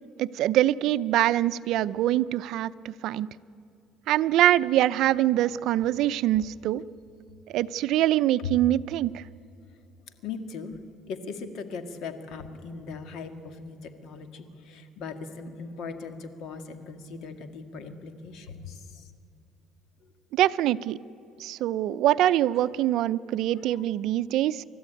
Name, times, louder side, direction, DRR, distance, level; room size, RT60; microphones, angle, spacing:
voice 1, 0.2-3.3 4.1-6.8 7.5-9.2 20.3-21.0 21.4-24.6, right 13 dB, 70° right, 16 dB, 0.5 m, -24 dB
voice 2, 10.2-10.8 11.1-19.1 20.0-20.1 22.6-22.7 22.9-23.0, left 5 dB, 70° left, 8 dB, 2.0 m, -39 dB
29.0 x 13.5 x 9.2 m, 2.5 s
cardioid pair, 120°, 0 cm